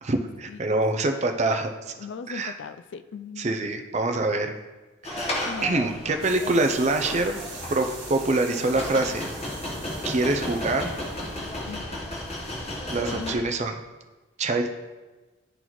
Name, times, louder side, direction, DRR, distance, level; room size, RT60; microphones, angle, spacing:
voice 1, 0.0-1.9 2.3-2.5 3.4-4.5 5.1-7.3 7.7-9.3 10.0-10.9 12.9-13.7 14.4-14.7, right 2 dB, 35° right, 5 dB, 0.5 m, -25 dB
voice 2, 2.0-3.6 5.5-5.9 11.7-12.0 13.1-13.4, left 6 dB, 65° left, 10 dB, 0.3 m, -38 dB
sound 1, 5.0-13.4, left 1 dB, 30° left, 1.0 m, -34 dB
sound 2, 6.2-11.7, right 6 dB, 65° right, 1.1 m, -44 dB
11.0 x 4.0 x 3.0 m, 1.2 s
head